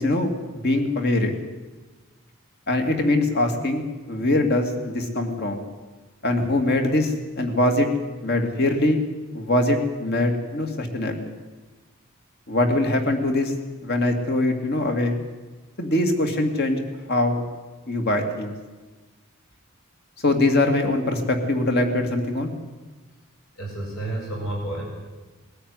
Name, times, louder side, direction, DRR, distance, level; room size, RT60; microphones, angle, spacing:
voice 1, 0.0-1.3 2.7-5.6 6.2-7.9 8.2-9.0 9.3-11.2 12.5-13.5 13.8-15.2 15.8-16.8 17.1-17.4 17.9-18.5 20.2-22.5, left 1 dB, 45° left, 4 dB, 2.5 m, -22 dB
voice 2, 23.6-24.8, right 1 dB, 70° left, -2 dB, 7.9 m, -30 dB
21.0 x 13.0 x 9.7 m, 1.3 s
head